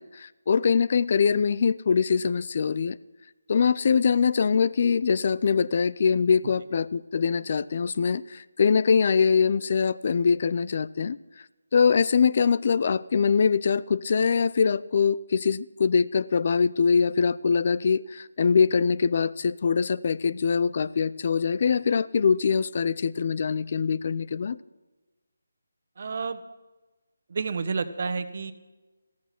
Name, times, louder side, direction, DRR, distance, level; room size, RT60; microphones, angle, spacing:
voice 1, 0.0-3.0 3.5-11.2 11.7-24.6, left 6 dB, 45° left, 20 dB, 0.6 m, -23 dB
voice 2, 26.0-26.4 27.3-28.5, right 5 dB, 50° right, 12 dB, 1.3 m, -30 dB
15.5 x 14.0 x 6.0 m, 1.2 s
figure-of-eight pair, 155°, 0 cm